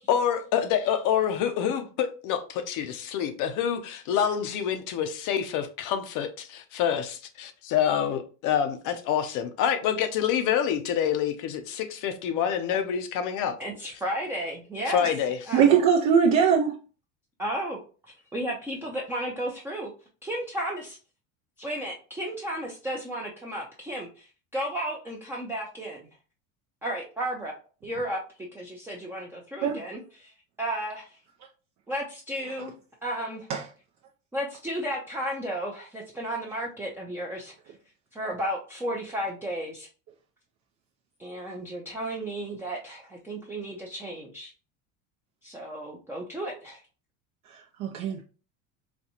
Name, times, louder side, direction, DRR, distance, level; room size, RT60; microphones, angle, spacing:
voice 1, 0.1-13.6 14.9-15.4, left 8 dB, 55° left, 0.6 m, -27 dB
voice 2, 13.6-15.0 15.5-15.7 17.4-17.8 18.3-19.9 20.2-20.8 21.6-26.0 26.8-27.5 27.8-30.3 30.6-31.2 31.9-32.7 33.0-33.5 34.3-37.5 38.1-39.9 41.2-44.5 45.4-46.8, right 1 dB, 5° right, 0.5 m, -33 dB
voice 3, 15.5-16.7 29.6-29.8 33.5-33.6 47.8-48.2, right 7 dB, 50° right, 0.6 m, -20 dB
4.1 x 2.3 x 2.8 m
supercardioid pair, 115°, 37 cm